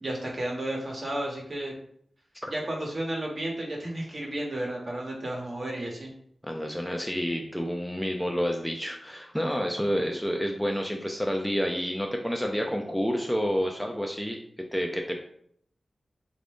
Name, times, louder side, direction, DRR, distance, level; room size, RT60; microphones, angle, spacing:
voice 1, 0.0-1.7 2.5-6.1, right 1 dB, 45° right, -1 dB, 1.1 m, -32 dB
voice 2, 6.4-14.4 14.7-15.4, equal, ahead, 1 dB, 0.4 m, -29 dB
3.4 x 2.6 x 3.5 m, 0.66 s
wide cardioid pair, 80°, 0 cm